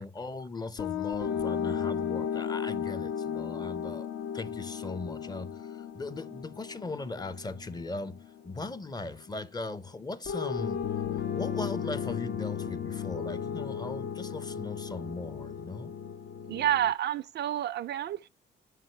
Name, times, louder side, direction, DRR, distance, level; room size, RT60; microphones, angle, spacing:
voice 1, 0.0-4.1 4.3-16.0, left 2 dB, 20° left, 0.6 m, -39 dB
sound 1, 0.8-8.9 10.2-16.9, left 8 dB, 65° left, 0.8 m, -35 dB
voice 2, 16.5-18.3, right 11 dB, 60° right, 0.4 m, -29 dB
7.3 x 4.8 x 4.4 m
cardioid pair, 90°, 20 cm